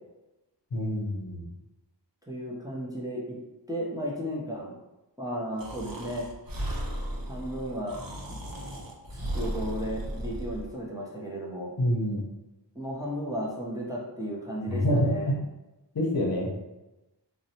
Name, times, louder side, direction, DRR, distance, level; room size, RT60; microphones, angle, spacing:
voice 1, 0.7-1.4 11.8-12.3 14.7-15.3 15.9-16.5, equal, 55° left, -2 dB, 0.6 m, -26 dB
voice 2, 2.3-3.4 3.7-4.7 5.2-6.3 7.3-8.0 8.3-8.4 9.3-11.7 12.7-15.3, equal, 10° right, -5 dB, 0.5 m, -34 dB
Breathing, 5.6-10.7, equal, 55° right, 0.6 m, -35 dB
2.6 x 2.1 x 2.7 m, 1.0 s
wide cardioid pair, 40°, 43 cm